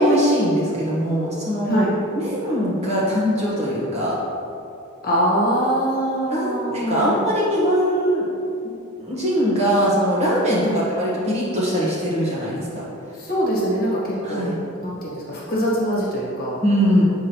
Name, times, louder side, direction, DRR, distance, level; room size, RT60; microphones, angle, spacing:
voice 1, 0.0-1.9 2.1-4.2 6.2-8.3 9.0-12.8 14.2-14.6 16.6-17.0, equal, 30° right, -7 dB, 1.4 m, -21 dB
voice 2, 5.0-7.3 10.6-10.8 13.1-14.5 14.8-16.6, equal, 40° left, -5 dB, 1.4 m, -23 dB
7.3 x 4.8 x 3.0 m, 2.7 s
head